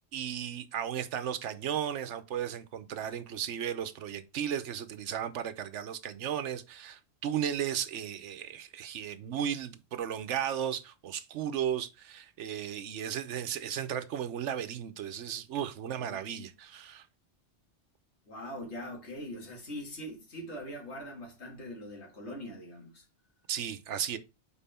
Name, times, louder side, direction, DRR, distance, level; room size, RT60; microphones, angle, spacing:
voice 1, 0.1-17.0 23.5-24.2, right 9 dB, 85° right, 1.0 m, -35 dB
voice 2, 16.0-16.5 18.3-23.0, equal, 70° left, 2.1 m, -42 dB
5.5 x 4.4 x 4.2 m
omnidirectional pair, 1.2 m